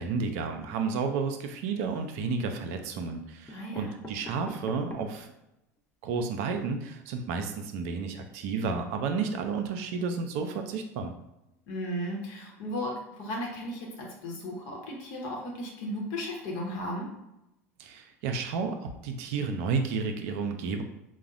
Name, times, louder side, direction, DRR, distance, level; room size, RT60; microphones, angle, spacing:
voice 1, 0.0-5.3 6.0-11.1 17.8-20.8, right 5 dB, 60° right, 6 dB, 0.5 m, -31 dB
sound 1, 1.7-2.4 3.1-3.2 3.5-5.3 5.8-5.9 6.1-6.2 6.5-6.6, equal, 15° left, 0.6 m, -45 dB
voice 2, 3.5-3.9 11.7-17.1, equal, 60° left, -1 dB, 0.9 m, -35 dB
4.7 x 2.1 x 2.4 m, 0.90 s
figure-of-eight pair, 75°, 8 cm